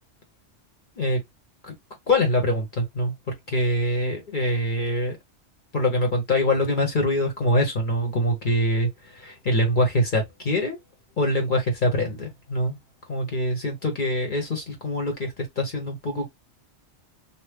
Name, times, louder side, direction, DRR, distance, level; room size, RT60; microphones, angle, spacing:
voice 1, 2.1-5.2 5.7-10.8 11.2-12.8 13.1-16.3, left 1 dB, 45° left, 1.1 m, -24 dB
2.9 x 2.1 x 3.4 m
omnidirectional pair, 1.3 m